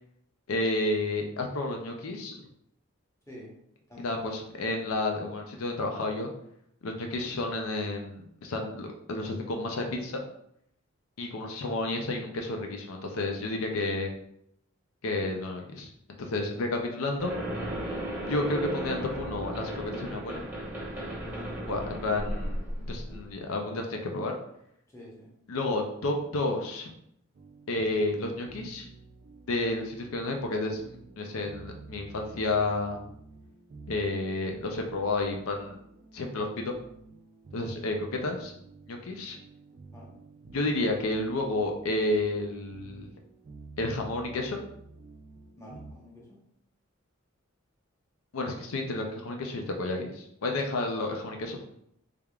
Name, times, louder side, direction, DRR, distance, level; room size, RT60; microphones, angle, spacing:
voice 1, 0.5-2.4 4.0-6.3 6.8-10.2 11.2-14.1 15.0-15.9 16.2-17.3 18.2-20.4 21.7-24.4 25.5-26.9 27.7-28.9 29.5-30.8 31.2-33.0 33.9-35.8 36.1-36.7 37.5-38.5 38.9-39.4 40.5-43.1 43.8-44.6 48.3-51.6, left 2 dB, 80° left, 3 dB, 0.5 m, -31 dB
voice 2, 3.9-4.8 21.2-21.6 24.9-25.3 39.9-40.1 40.6-40.7 45.6-46.4, left 1 dB, 15° left, -4 dB, 0.9 m, -49 dB
sound 1, 17.2-23.3, equal, 10° right, 0.8 m, -35 dB
sound 2, 27.3-45.9, right 3 dB, 45° right, 0.4 m, -51 dB
3.4 x 3.4 x 2.3 m, 0.73 s
head